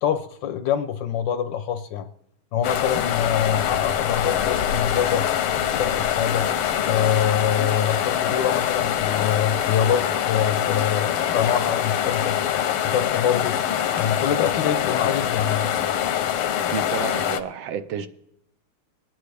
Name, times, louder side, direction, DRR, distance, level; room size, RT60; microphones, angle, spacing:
voice 1, 0.0-2.1 2.5-5.2 5.8-6.5 6.8-12.4 12.8-13.6 14.0-15.7, left 9 dB, 70° left, 1.1 m, -25 dB
sound 1, 2.6-17.4, left 10 dB, 90° left, 1.6 m, -24 dB
voice 2, 16.7-18.1, right 8 dB, 75° right, 1.4 m, -31 dB
21.0 x 9.2 x 3.3 m
omnidirectional pair, 2.3 m